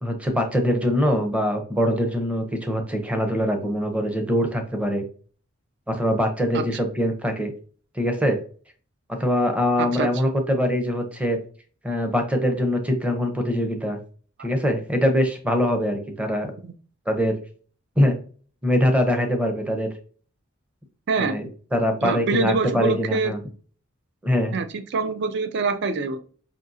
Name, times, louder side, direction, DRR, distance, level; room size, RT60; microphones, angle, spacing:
voice 1, 0.0-5.0 5.9-7.5 7.9-8.4 9.2-11.4 11.8-14.0 14.4-16.5 17.1-17.3 18.0-18.2 18.6-19.9 21.2-23.4 24.2-24.5, equal, 5° right, 4 dB, 0.6 m, -23 dB
voice 2, 9.8-10.3 14.4-14.5 16.6-16.7 21.1-21.4 22.0-23.3 24.5-26.2, right 4 dB, 55° right, 9 dB, 0.4 m, -25 dB
5.0 x 2.7 x 2.6 m, 0.42 s
head